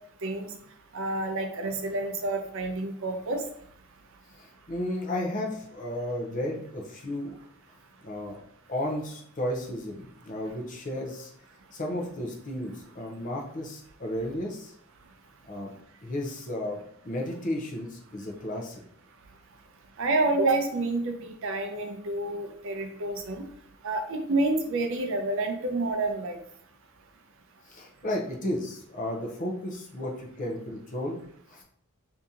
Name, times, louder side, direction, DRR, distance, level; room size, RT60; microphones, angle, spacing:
voice 1, 0.9-3.4 20.0-23.4 23.8-26.4, right 2 dB, 60° right, 5 dB, 0.5 m, -28 dB
voice 2, 4.4-7.4 8.0-8.4 8.7-11.3 11.7-14.7 15.5-15.7 16.0-18.8 27.7-31.2 31.5-31.6, left 1 dB, 35° left, 0 dB, 0.6 m, -33 dB
2.8 x 2.7 x 3.6 m, 0.66 s
head